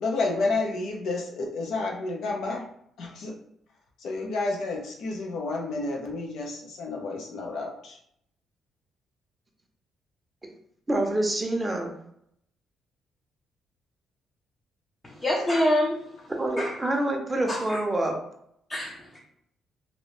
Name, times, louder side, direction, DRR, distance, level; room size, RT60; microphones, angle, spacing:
voice 1, 0.0-2.6 3.0-3.3 4.0-8.0, left 3 dB, 70° left, 0 dB, 0.8 m, -30 dB
voice 2, 10.9-11.9 16.3-18.2, right 1 dB, 15° right, 1 dB, 0.7 m, -26 dB
voice 3, 15.0-16.0 16.6-16.7 17.5-17.8 18.7-19.2, left 1 dB, 25° left, -3 dB, 0.6 m, -26 dB
2.9 x 2.7 x 3.2 m, 0.72 s
cardioid pair, 120°, 0 cm